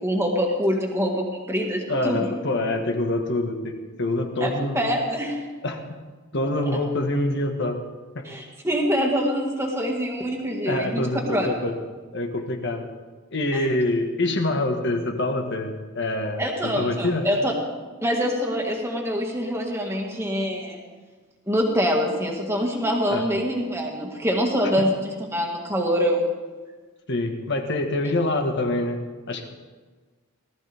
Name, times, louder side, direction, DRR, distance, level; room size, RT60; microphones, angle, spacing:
voice 1, 0.0-2.3 4.4-5.4 6.7-6.8 8.2-11.0 11.3-11.5 13.5-13.7 16.4-17.5 18.0-20.8 21.5-26.2, equal, 10° right, 0 dB, 1.9 m, -25 dB
voice 2, 1.9-4.8 5.6-5.8 6.3-7.8 8.1-8.2 10.7-11.7 12.1-12.9 13.3-17.3 23.1-23.2 24.8-24.9 27.1-29.0 29.3-29.5, left 2 dB, 55° left, 4 dB, 1.6 m, -25 dB
19.0 x 13.5 x 3.6 m, 1.4 s
head